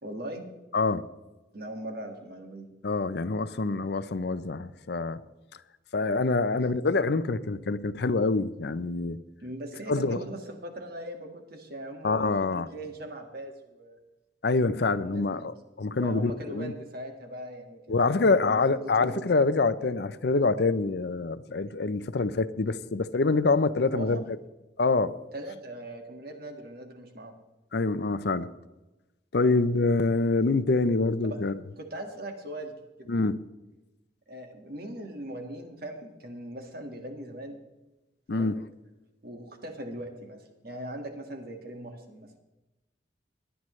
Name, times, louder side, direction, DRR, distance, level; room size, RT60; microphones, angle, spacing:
voice 1, 0.0-0.5 1.5-2.7 9.4-14.0 14.9-15.5 16.0-19.4 23.9-24.2 25.3-27.3 29.4-29.6 31.2-31.4 31.8-33.1 34.3-37.6 38.3-38.5 39.2-42.3, right 1 dB, 55° right, 4 dB, 1.8 m, -40 dB
voice 2, 2.8-5.2 5.9-9.2 9.9-10.2 12.0-12.7 14.4-16.7 17.9-24.2 24.8-25.2 27.7-28.5 29.3-31.6 33.1-33.4 38.3-38.6, left 3 dB, 60° left, 14 dB, 0.6 m, -26 dB
18.0 x 11.0 x 3.2 m, 1.0 s
head